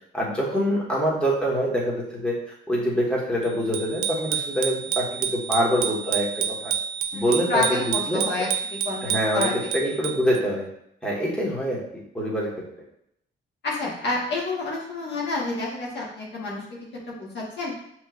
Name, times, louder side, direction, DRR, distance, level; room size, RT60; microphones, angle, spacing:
voice 1, 0.1-2.3 2.7-6.7 7.1-8.2 9.0-10.7 11.0-12.5, equal, 5° left, -5 dB, 1.5 m, -25 dB
Bicycle bell, 3.7-10.4, right 8 dB, 90° right, 0.4 m, -29 dB
voice 2, 7.1-8.5 8.8-9.5 13.6-16.8 17.1-17.7, left 3 dB, 60° left, -4 dB, 1.4 m, -29 dB
5.5 x 3.1 x 2.5 m, 0.74 s
cardioid pair, 90°, 20 cm